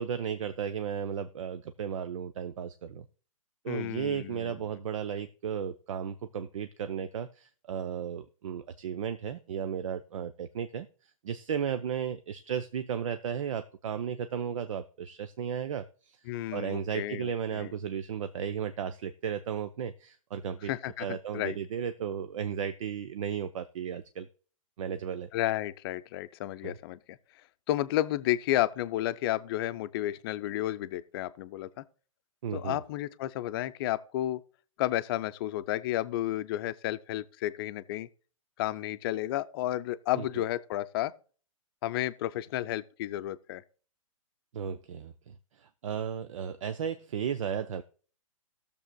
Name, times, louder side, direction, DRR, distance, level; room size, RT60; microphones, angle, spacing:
voice 1, 0.0-3.0 3.6-16.2 16.5-20.7 21.0-24.3 24.8-25.3 26.6-26.7 32.4-32.8 40.2-40.3 44.5-47.8, right 8 dB, 65° right, 0.6 m, -34 dB
voice 2, 3.7-4.7 16.3-17.7 20.6-21.6 25.3-27.2 27.7-31.8 32.5-34.4 34.8-38.1 38.6-41.1 41.8-43.6, left 14 dB, 40° left, 0.6 m, -32 dB
18.5 x 6.9 x 2.3 m
hypercardioid pair, 120°, 18 cm